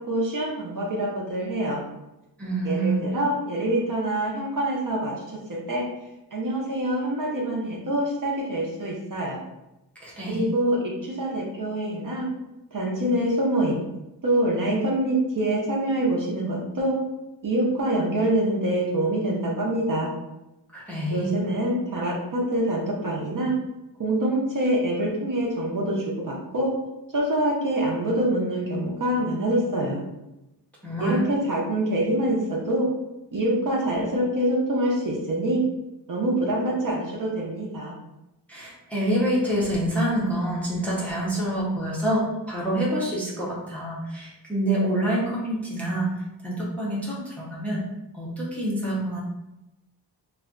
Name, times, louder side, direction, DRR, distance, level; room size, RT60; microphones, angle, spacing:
voice 1, 0.0-1.8 2.6-5.9 6.3-9.4 10.3-12.3 12.7-13.8 14.2-17.0 17.4-20.1 21.1-23.5 24.0-26.7 27.1-30.0 31.0-32.9 33.3-35.6 36.1-37.9, right 1 dB, 45° right, -3 dB, 0.6 m, -25 dB
voice 2, 2.4-3.0 10.0-10.4 20.7-21.3 30.8-31.2 38.5-46.1 46.4-47.8 48.1-49.2, right 1 dB, 5° left, -6 dB, 0.5 m, -26 dB
2.4 x 2.1 x 3.6 m, 0.93 s
wide cardioid pair, 175°, 44 cm